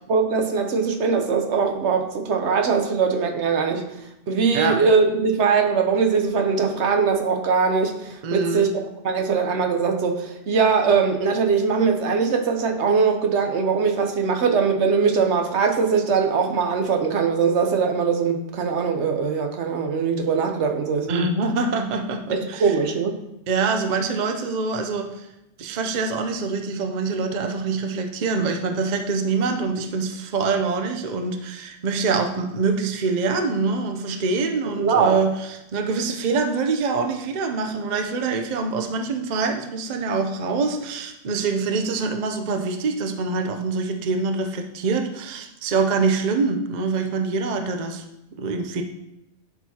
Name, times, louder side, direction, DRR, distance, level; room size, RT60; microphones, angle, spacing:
voice 1, 0.1-3.8 4.3-8.7 9.0-21.3 22.3-23.2 34.8-35.2, right 5 dB, 70° right, 4 dB, 1.0 m, -21 dB
voice 2, 8.2-8.7 21.1-22.8 23.5-25.3 25.6-48.0 48.3-48.8, right 4 dB, 45° right, 5 dB, 0.6 m, -25 dB
11.0 x 4.6 x 2.8 m, 0.88 s
omnidirectional pair, 1.2 m